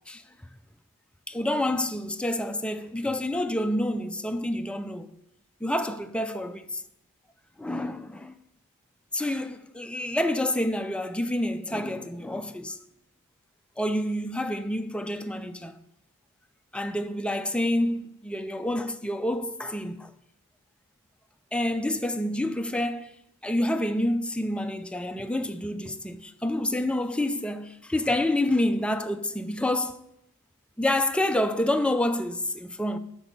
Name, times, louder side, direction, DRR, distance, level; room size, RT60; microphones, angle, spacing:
voice 1, 1.3-5.1 5.6-6.8 7.6-8.3 9.1-12.8 13.8-15.8 16.7-20.1 21.5-23.1 23.4-30.0 30.8-33.0, left 1 dB, 5° left, 0.5 m, -28 dB
8.4 x 6.1 x 5.4 m
head